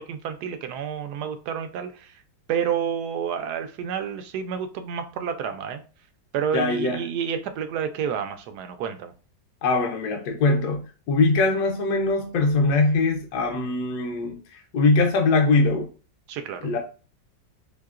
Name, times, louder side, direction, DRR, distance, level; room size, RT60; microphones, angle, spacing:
voice 1, 0.0-2.2 2.5-5.8 6.3-9.1 16.3-16.7, right 7 dB, 75° right, 1.0 m, -29 dB
voice 2, 6.5-7.0 9.6-15.9 16.6-16.8, left 3 dB, 70° left, 1.1 m, -22 dB
4.4 x 2.7 x 2.4 m
omnidirectional pair, 1.9 m